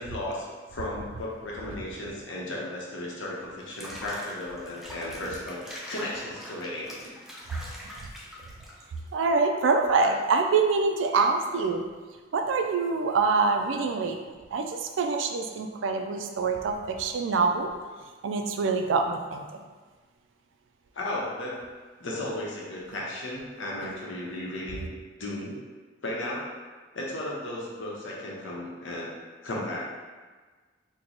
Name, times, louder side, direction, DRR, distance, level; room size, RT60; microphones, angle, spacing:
voice 1, 0.0-7.0 10.0-10.1 20.9-21.6 22.0-24.9 25.2-25.6 26.0-26.5 26.9-29.1 29.4-29.9, left 1 dB, 90° left, -4 dB, 0.8 m, -35 dB
Water / Bathtub (filling or washing), 3.6-9.1, equal, ahead, 0.4 m, -43 dB
voice 2, 9.1-11.9 12.3-14.2 14.5-17.7 18.2-19.5 23.8-23.9, right 4 dB, 90° right, 5 dB, 0.4 m, -25 dB
3.0 x 2.2 x 3.9 m, 1.4 s
head